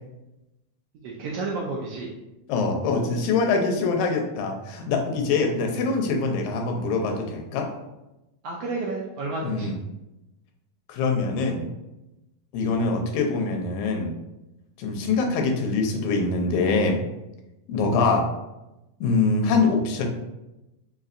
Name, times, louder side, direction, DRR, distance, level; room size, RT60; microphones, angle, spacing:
voice 1, 1.0-2.1 8.4-9.8, right 3 dB, 80° right, -3 dB, 1.4 m, -31 dB
voice 2, 2.5-7.7 9.4-9.8 10.9-11.6 12.5-14.1 14.8-17.0 17.7-18.3 19.0-20.1, left 4 dB, 90° left, 3 dB, 2.0 m, -24 dB
5.1 x 2.6 x 2.5 m, 0.97 s
omnidirectional pair, 3.3 m